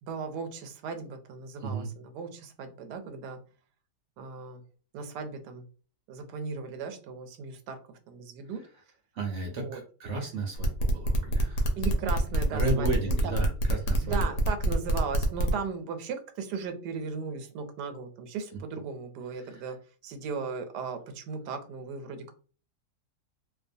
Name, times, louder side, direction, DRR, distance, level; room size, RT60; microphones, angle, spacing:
voice 1, 0.0-3.4 4.2-4.6 4.9-5.6 6.1-7.8 8.1-8.6 9.5-9.8 11.8-13.3 14.0-19.8 20.0-22.3, right 5 dB, 80° right, 7 dB, 1.1 m, -37 dB
voice 2, 9.1-11.7 12.5-14.2, right 2 dB, 65° right, 1 dB, 0.7 m, -33 dB
sound 1, 10.6-15.5, right 1 dB, 75° left, 1.2 m, -26 dB
2.8 x 2.2 x 2.6 m, 0.39 s
omnidirectional pair, 1.7 m